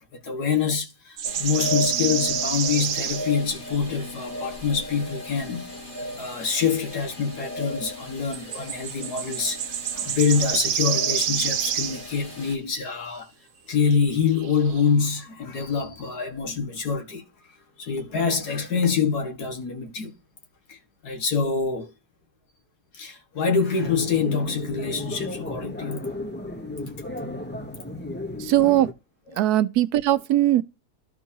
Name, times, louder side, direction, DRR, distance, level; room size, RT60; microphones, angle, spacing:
voice 1, 0.2-5.7 6.2-9.6 9.9-13.3 13.7-17.2 17.8-20.1 20.7-20.8 21.0-21.9 22.9-26.1 29.3-29.4, left 5 dB, 80° left, 2.1 m, -25 dB
sound 1, 1.2-12.6, left 1 dB, 35° left, 2.3 m, -36 dB
sound 2, 1.2-3.4 3.7-3.9 8.3-12.1 13.8-14.1 14.4-14.9, right 9 dB, 65° right, 0.9 m, -28 dB
sound 3, 23.8-28.9, left 1 dB, 15° left, 0.4 m, -34 dB
voice 2, 28.4-28.9 29.4-30.6, right 13 dB, 90° right, 1.1 m, -20 dB
13.5 x 4.6 x 2.8 m
omnidirectional pair, 1.6 m